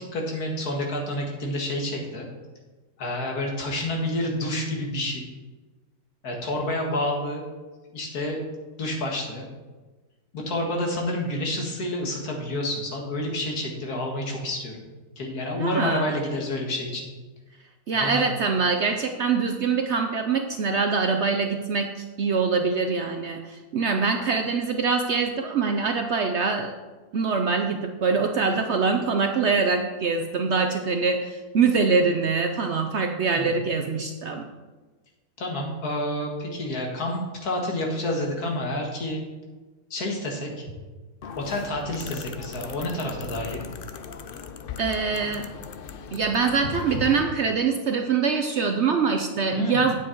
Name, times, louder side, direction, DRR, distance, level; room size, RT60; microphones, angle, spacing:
voice 1, 0.1-2.3 3.0-5.3 6.2-7.5 7.9-8.4 8.8-9.5 10.3-14.9 15.2-17.1 17.9-18.3 33.4-33.6 35.4-39.2 39.9-40.7 41.4-43.6 49.5-49.9, left 1 dB, 85° left, 0 dB, 2.2 m, -29 dB
voice 2, 15.6-16.1 17.9-26.7 27.1-34.4 44.8-45.5 46.1-50.0, right 5 dB, 60° right, 5 dB, 0.8 m, -24 dB
sound 1, 41.2-47.3, left 6 dB, 65° left, 0.5 m, -39 dB
9.5 x 7.8 x 4.5 m, 1.3 s
omnidirectional pair, 1.6 m